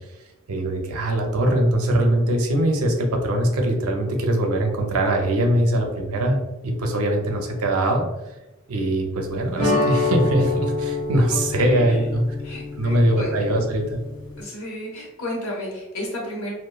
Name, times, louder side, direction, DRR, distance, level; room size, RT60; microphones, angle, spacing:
voice 1, 0.5-6.4 6.6-8.0 8.7-12.2 12.8-14.0, right 1 dB, 80° right, 2 dB, 0.5 m, -22 dB
sound 1, 9.6-14.4, left 3 dB, 25° left, 1.2 m, -26 dB
voice 2, 11.3-12.1 12.4-13.4 14.4-16.5, left 1 dB, 70° left, -3 dB, 1.0 m, -33 dB
2.9 x 2.1 x 2.2 m, 1.0 s
head